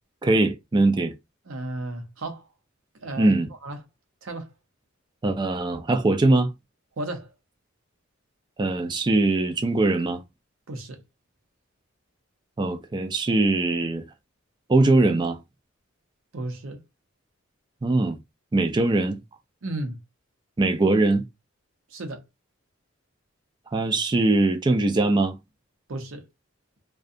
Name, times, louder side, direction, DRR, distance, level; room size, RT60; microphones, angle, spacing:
voice 1, 0.2-1.1 3.2-3.5 5.2-6.5 8.6-10.2 12.6-14.0 14.7-15.4 17.8-18.2 18.5-19.2 20.6-21.2 23.7-25.4, right 2 dB, 20° right, 0.3 m, -21 dB
voice 2, 1.5-2.5 3.0-3.8 4.2-4.5 7.0-7.3 10.7-11.0 16.3-16.8 19.6-20.0 21.9-22.2 25.9-26.3, right 2 dB, 75° right, 0.7 m, -34 dB
2.7 x 2.2 x 2.4 m
head